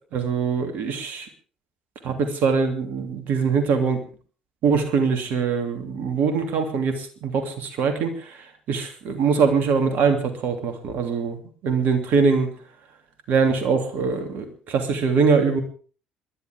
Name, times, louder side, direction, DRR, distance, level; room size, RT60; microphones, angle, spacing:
voice 1, 0.1-1.3 2.0-4.0 4.6-8.4 8.7-12.5 13.3-15.6, right 5 dB, 60° right, 7 dB, 2.9 m, -23 dB
27.5 x 11.5 x 3.6 m, 0.40 s
figure-of-eight pair, 50°, 3 cm